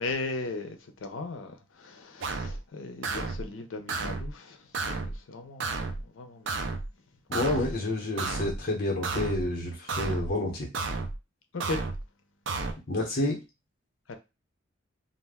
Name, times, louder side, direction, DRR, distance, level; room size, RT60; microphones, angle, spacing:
voice 1, 0.0-6.7 11.5-11.8 14.1-14.2, left 3 dB, 80° left, 0.6 m, -37 dB
sound 1, 2.2-2.6 3.0-3.4 3.9-4.3 4.7-5.2 5.6-6.0 6.5-6.9 7.3-7.7 8.2-8.6 9.0-9.4 9.9-10.3 10.7-11.2 11.6-12.0 12.5-12.7, right 3 dB, 65° right, 0.4 m, -32 dB
voice 2, 7.3-10.7 12.9-13.4, left 2 dB, 50° left, 0.7 m, -29 dB
2.4 x 2.1 x 3.4 m
head